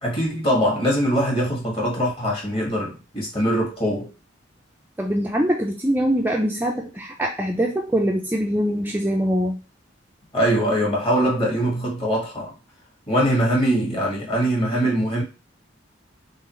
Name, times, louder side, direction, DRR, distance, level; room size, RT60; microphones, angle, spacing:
voice 1, 0.0-4.1 10.3-12.5 13.1-15.2, equal, 30° left, 1.8 m, -22 dB
voice 2, 5.0-9.6, equal, 10° right, 0.4 m, -23 dB
3.9 x 3.8 x 3.1 m
head